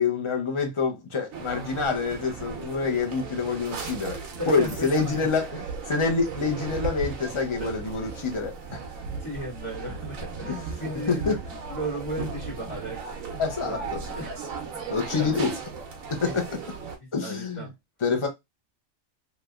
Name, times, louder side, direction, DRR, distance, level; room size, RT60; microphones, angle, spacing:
voice 1, 0.0-5.5 5.9-8.8 10.5-11.4 13.4-14.0 14.9-15.5 16.1-16.5 17.1-17.7 18.0-18.3, left 4 dB, 45° left, 0.4 m, -27 dB
sound 1, 1.3-17.0, right 5 dB, 75° right, 1.1 m, -36 dB
voice 2, 4.4-5.3 5.5-5.6 7.6-8.2 9.2-11.4 11.7-13.0 13.3-14.4 14.7-14.8 15.1-15.5 16.2-16.6 17.0-17.7, right 1 dB, 20° left, 1.7 m, -36 dB
3.1 x 2.9 x 2.3 m
omnidirectional pair, 1.4 m